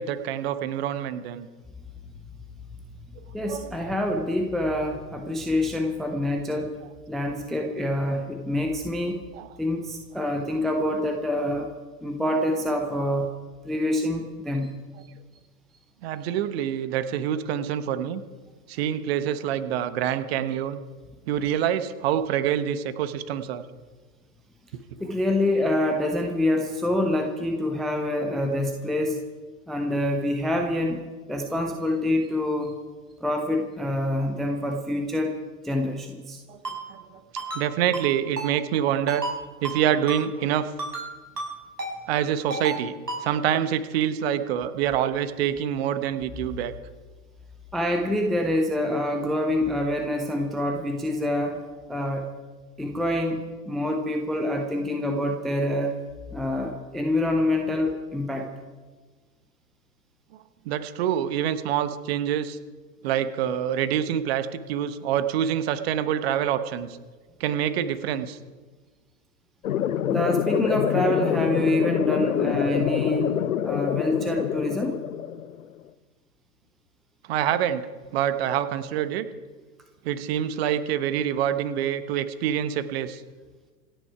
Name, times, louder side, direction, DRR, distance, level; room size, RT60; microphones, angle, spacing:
voice 1, 0.0-1.5 3.4-4.0 9.3-9.5 16.0-18.2 18.7-20.8 21.3-23.6 36.5-36.6 36.9-37.0 37.5-39.3 39.6-40.7 42.1-42.9 43.2-46.7 60.6-62.6 63.0-67.0 67.4-68.4 77.3-77.9 78.1-79.3 80.0-83.2, right 10 dB, 40° right, 13 dB, 1.1 m, -26 dB
voice 2, 3.3-6.7 7.1-9.2 9.6-11.7 12.0-13.3 13.6-14.7 25.0-29.2 29.7-31.0 31.3-32.8 33.2-35.4 35.6-36.4 47.7-51.6 51.9-52.3 52.8-56.0 56.3-58.5 70.1-73.3 73.6-75.0, left 1 dB, ahead, 3 dB, 0.5 m, -26 dB
Ringtone, 36.6-36.8 37.4-37.6 37.9-38.1 38.4-38.5 39.1-39.3 39.6-39.8 40.1-40.2 40.8-41.1 41.4-41.5 41.8-41.9 42.5-42.8 43.1-43.2, right 2 dB, 80° right, 6.1 m, -31 dB
sound 1, 69.6-75.7, left 10 dB, 60° left, 0.9 m, -26 dB
26.5 x 9.8 x 4.8 m, 1.4 s
figure-of-eight pair, 105°, 48 cm